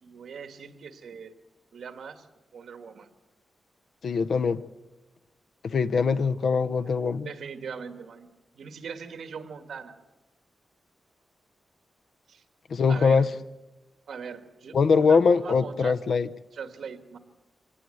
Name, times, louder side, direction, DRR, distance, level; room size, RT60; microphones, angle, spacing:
voice 1, 0.0-1.3 1.7-2.3 2.5-3.1 7.1-8.3 8.5-9.9 12.3-12.4 12.9-13.3 14.1-16.0 16.5-17.2, right 6 dB, 75° right, 8 dB, 1.8 m, -40 dB
voice 2, 4.0-4.6 5.6-7.3 12.7-13.3 14.7-16.3, left 5 dB, 60° left, 11 dB, 0.8 m, -22 dB
24.5 x 18.5 x 7.8 m, 1.0 s
wide cardioid pair, 165°, 0 cm